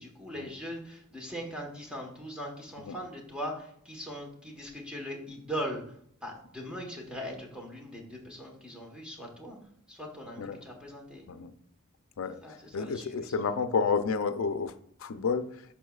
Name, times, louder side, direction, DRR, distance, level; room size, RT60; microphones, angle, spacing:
voice 1, 0.0-9.6 9.9-11.3 12.4-13.5, equal, 5° right, 1.2 m, -40 dB
voice 2, 12.7-14.7 15.0-15.5, left 5 dB, 65° left, 0.5 m, -30 dB
11.0 x 5.6 x 2.4 m
head